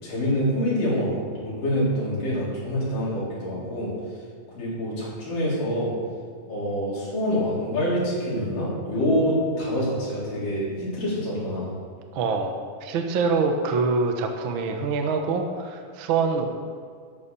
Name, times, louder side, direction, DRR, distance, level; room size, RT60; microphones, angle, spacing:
voice 1, 0.0-3.9 4.5-5.9 6.5-11.7, equal, 85° left, -7 dB, 5.9 m, -26 dB
voice 2, 12.1-16.4, right 4 dB, 55° right, 4 dB, 1.5 m, -25 dB
13.0 x 8.5 x 7.0 m, 2.2 s
omnidirectional pair, 3.7 m